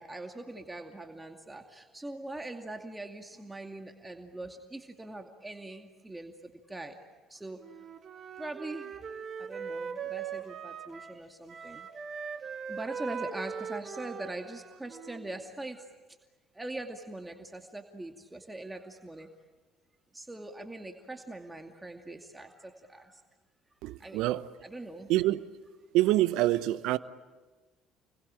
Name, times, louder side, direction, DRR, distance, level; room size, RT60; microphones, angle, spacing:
voice 1, 0.0-7.0 7.3-7.6 8.4-8.9 9.4-11.9 12.4-15.9 16.5-19.3 20.1-23.2 24.0-24.2 24.6-25.1, right 2 dB, 15° right, 2.3 m, -42 dB
Wind instrument woodwind instrument, 7.6-11.2 11.5-15.4, right 6 dB, 45° right, 2.0 m, -40 dB
voice 2, 23.8-24.5 25.1-25.5 25.9-27.0, right 16 dB, 70° right, 0.9 m, -26 dB
29.5 x 22.0 x 8.9 m
hypercardioid pair, 60°, 0 cm